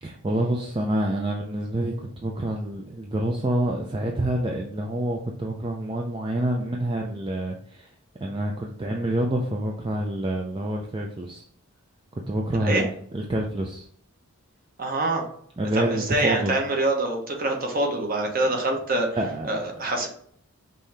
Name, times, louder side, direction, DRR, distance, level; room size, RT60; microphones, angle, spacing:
voice 1, 0.0-7.9 8.2-11.4 12.3-13.9 15.6-16.6 19.1-19.9, right 1 dB, 20° right, 0 dB, 0.4 m, -27 dB
voice 2, 14.8-15.3 15.7-19.2 19.5-20.1, right 2 dB, 40° right, 2 dB, 0.9 m, -25 dB
5.4 x 2.7 x 3.3 m, 0.62 s
head